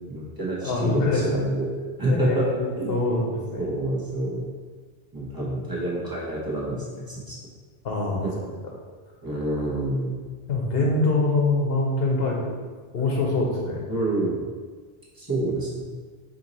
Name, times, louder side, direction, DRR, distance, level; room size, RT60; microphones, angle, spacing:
voice 1, 0.1-1.7 2.0-2.5 2.8-3.0 3.6-4.5 5.1-7.4 8.1-8.3 9.2-10.2 13.9-14.4 15.2-15.8, right 1 dB, 20° right, -5 dB, 0.9 m, -28 dB
voice 2, 0.6-1.4 2.1-3.7 7.8-8.3 10.5-12.6 12.9-13.9, left 2 dB, 70° left, -1 dB, 1.0 m, -24 dB
4.4 x 2.9 x 3.9 m, 1.5 s
omnidirectional pair, 1.0 m